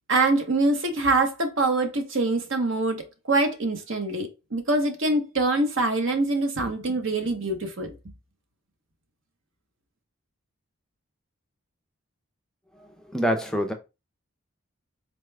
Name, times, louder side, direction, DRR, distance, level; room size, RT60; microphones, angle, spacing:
voice 1, 0.1-7.9, right 2 dB, 60° right, 0.8 m, -24 dB
voice 2, 13.1-13.7, equal, 5° left, 0.4 m, -25 dB
4.1 x 2.3 x 3.2 m
head